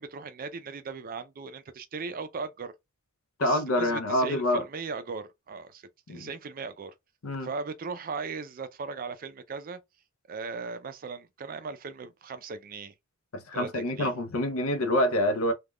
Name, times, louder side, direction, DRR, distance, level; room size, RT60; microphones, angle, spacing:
voice 1, 0.0-2.7 3.4-5.8 6.1-6.9 7.4-9.8 10.3-12.9 13.5-14.1, right 4 dB, 40° right, 0.4 m, -38 dB
voice 2, 3.4-4.6 6.1-6.3 7.2-7.5 13.3-15.5, left 1 dB, 75° left, 0.7 m, -26 dB
3.5 x 2.3 x 2.3 m
head